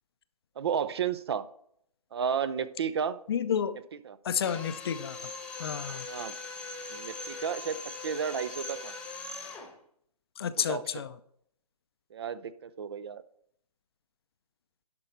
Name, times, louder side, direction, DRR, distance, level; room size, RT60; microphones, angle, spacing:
voice 1, 0.6-1.4 2.1-3.2 4.0-4.2 6.1-6.4 6.9-8.9 10.6-11.0 12.1-13.2, right 7 dB, 40° right, 0.5 m, -32 dB
voice 2, 3.3-3.8 4.2-5.2 5.6-6.1 10.4-11.1, left 8 dB, 40° left, 0.5 m, -30 dB
Drill, 4.4-9.7, left 3 dB, 5° left, 1.1 m, -41 dB
10.5 x 5.9 x 4.4 m
hypercardioid pair, 155°, 20 cm